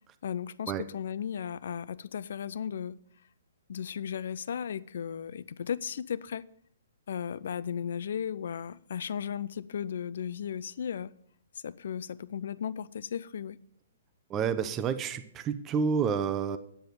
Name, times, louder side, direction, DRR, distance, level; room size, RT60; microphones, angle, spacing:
voice 1, 0.2-3.0 3.7-6.4 7.1-11.1 11.6-13.6, left 8 dB, 65° left, 0.5 m, -35 dB
voice 2, 14.3-16.6, right 6 dB, 25° right, 0.8 m, -29 dB
9.4 x 7.7 x 6.9 m
hypercardioid pair, 130°, 0 cm